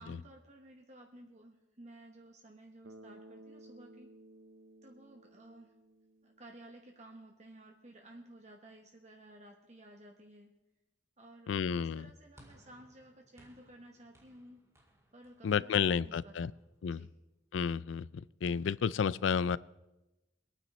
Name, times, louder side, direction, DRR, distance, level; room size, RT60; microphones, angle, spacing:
voice 1, 0.0-4.1 4.8-5.7 6.2-10.5 11.2-11.5 11.8-14.6 15.1-16.5 16.9-17.1, right 1 dB, 40° right, 2 dB, 1.2 m, -55 dB
Bass guitar, 2.8-6.8, right 1 dB, 90° right, 0.7 m, -56 dB
voice 2, 11.5-12.1 15.4-16.5 16.8-17.1 17.5-18.1 18.4-19.6, left 6 dB, 80° left, 20 dB, 0.4 m, -31 dB
sound 1, 12.4-16.8, equal, 15° right, 2.0 m, -64 dB
23.0 x 9.2 x 4.3 m, 1.0 s
head